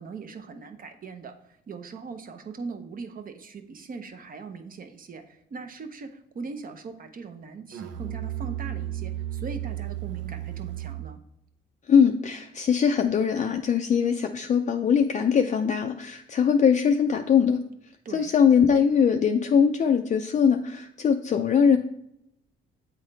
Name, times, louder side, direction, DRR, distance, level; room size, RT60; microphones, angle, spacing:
voice 1, 0.0-11.2 18.0-18.3, right 4 dB, 45° right, 7 dB, 0.8 m, -40 dB
Musical instrument, 7.7-11.3, right 12 dB, 85° right, 0.6 m, -34 dB
voice 2, 11.9-17.6 18.1-21.8, left 7 dB, 40° left, 5 dB, 0.4 m, -21 dB
8.2 x 3.7 x 3.3 m, 0.79 s
cardioid pair, 90°, 20 cm